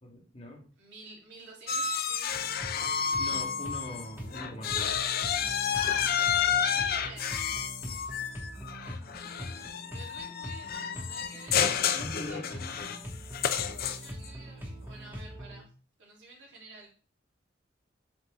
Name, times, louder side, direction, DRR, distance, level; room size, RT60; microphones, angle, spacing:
voice 1, 0.0-0.6 3.2-5.0 7.8-8.0 11.9-12.7, left 1 dB, 35° left, 0 dB, 1.8 m, -42 dB
voice 2, 0.8-2.5 5.7-8.5 9.9-11.7 12.3-13.0 13.3-15.7 16.0-16.9, right 3 dB, 80° right, -3 dB, 3.1 m, -50 dB
sound 1, 1.7-4.0 4.3-14.3, left 8 dB, 55° left, 0.6 m, -30 dB
sound 2, 2.3-15.6, equal, 10° right, 1.8 m, -43 dB
7.9 x 4.4 x 3.6 m, 0.37 s
head